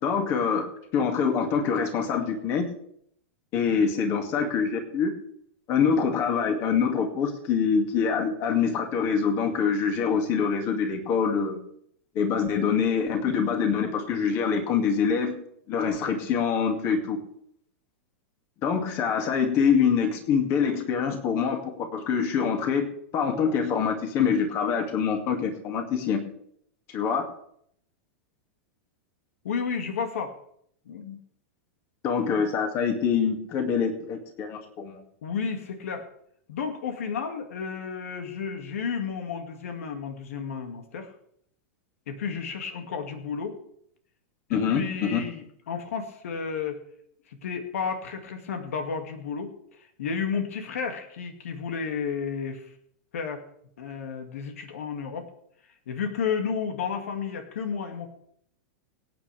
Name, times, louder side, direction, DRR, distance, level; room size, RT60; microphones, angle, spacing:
voice 1, 0.0-2.7 3.5-5.1 5.7-11.6 12.1-15.4 15.7-17.2 18.6-26.3 26.9-27.2 32.0-35.0 44.5-45.2, left 6 dB, 35° left, 4 dB, 2.4 m, -25 dB
voice 2, 29.4-30.3 30.9-31.2 35.2-36.1 36.5-41.1 42.1-43.6 44.5-46.8 47.3-49.5 50.0-52.7 53.1-53.4 53.8-55.3 55.9-58.1, left 6 dB, 90° left, 5 dB, 2.3 m, -32 dB
24.0 x 9.0 x 3.5 m, 0.69 s
supercardioid pair, 150°, 7 cm